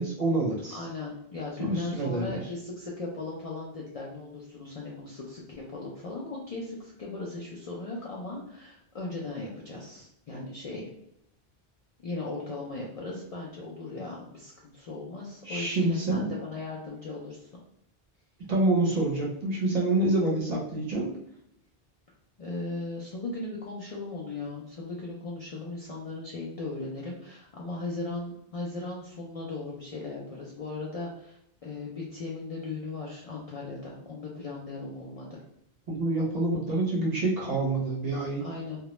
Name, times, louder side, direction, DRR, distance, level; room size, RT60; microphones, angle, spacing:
voice 1, 0.0-0.8 1.6-2.4 15.4-16.3 18.5-21.1 35.9-38.4, right 2 dB, 45° right, -3 dB, 0.6 m, -27 dB
voice 2, 0.7-10.9 12.0-17.5 22.4-35.4 38.4-38.8, left 3 dB, 55° left, -4 dB, 0.4 m, -37 dB
2.2 x 2.0 x 2.9 m, 0.75 s
omnidirectional pair, 1.0 m